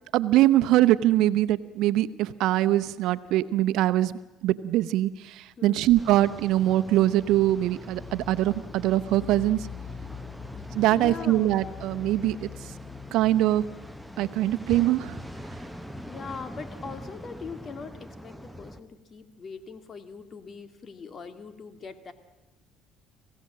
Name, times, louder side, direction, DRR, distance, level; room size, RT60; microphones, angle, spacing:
voice 1, 0.1-9.7 10.7-12.5 13.1-13.7 14.2-15.2, right 14 dB, 75° right, 12 dB, 0.8 m, -23 dB
voice 2, 5.6-5.9 10.9-11.6 16.1-22.1, left 5 dB, 45° left, 9 dB, 2.2 m, -41 dB
sound 1, 6.0-18.8, equal, ahead, 1.2 m, -43 dB
sound 2, 7.1-15.8, left 5 dB, 25° left, 1.1 m, -43 dB
26.5 x 16.0 x 7.6 m, 1.1 s
supercardioid pair, 80°, 0 cm